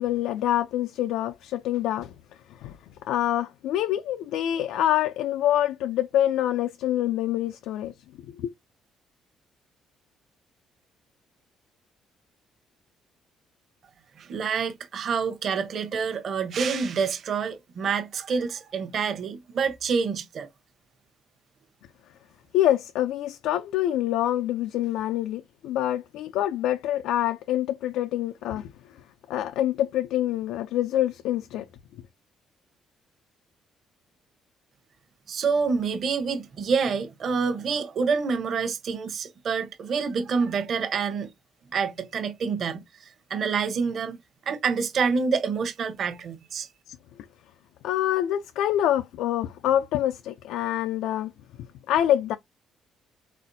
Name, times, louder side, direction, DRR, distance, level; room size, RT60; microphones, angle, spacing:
voice 1, 0.0-2.1 2.6-2.8 3.0-7.9 8.3-8.5 22.5-28.7 29.3-31.7 46.9-47.0 47.8-51.3 51.9-52.4, left 12 dB, 85° left, 0.4 m, -26 dB
voice 2, 14.2-20.5 35.3-41.3 41.7-44.2 44.5-46.7, right 5 dB, 40° right, 0.8 m, -27 dB
4.3 x 4.1 x 2.6 m
cardioid pair, 175°, 0 cm